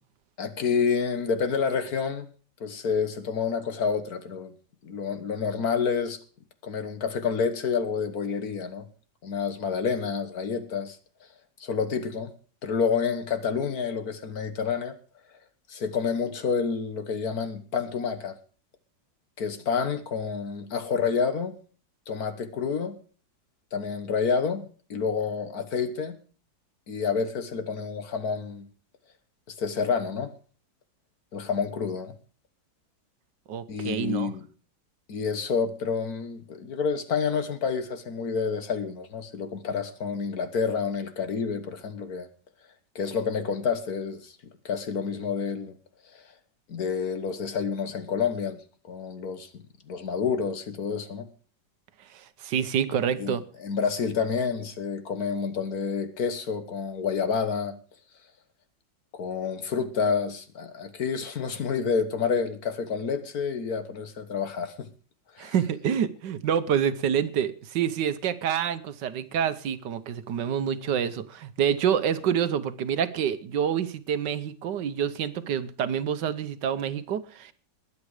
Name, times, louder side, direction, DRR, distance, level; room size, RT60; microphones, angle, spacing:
voice 1, 0.4-2.3 2.6-4.5 4.8-6.2 6.6-8.8 9.2-11.0 11.6-12.3 12.6-15.0 15.7-18.4 19.4-21.5 22.1-23.0 23.7-26.2 26.9-28.7 29.6-30.3 31.3-32.1 33.7-34.4 35.1-42.3 43.0-44.3 44.7-45.7 46.1-46.2 46.7-48.6 48.9-49.5 49.9-51.3 53.2-57.7 59.1-64.9 65.4-65.5, left 5 dB, 60° left, 1.7 m, -29 dB
voice 2, 33.5-34.3 52.1-53.4 65.4-77.5, right 8 dB, 75° right, 1.5 m, -27 dB
20.5 x 8.5 x 4.9 m
omnidirectional pair, 1.9 m